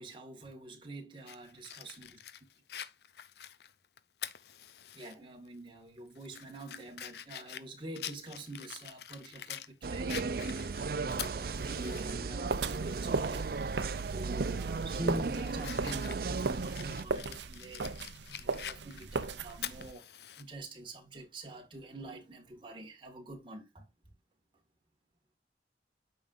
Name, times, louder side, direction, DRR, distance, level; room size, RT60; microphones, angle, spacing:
voice 1, 0.0-2.2 4.9-20.1 20.4-23.9, right 1 dB, 30° right, 2.0 m, -46 dB
Fire, 1.3-5.1 5.5-5.6 6.1-9.7 10.1-12.1 12.5-12.6 14.1-14.4 14.8-20.4, left 10 dB, 65° left, 0.5 m, -45 dB
sound 1, 9.8-17.1, right 4 dB, 55° right, 0.5 m, -35 dB
sound 2, 12.5-19.9, right 3 dB, 90° right, 0.7 m, -37 dB
9.0 x 6.4 x 2.6 m
head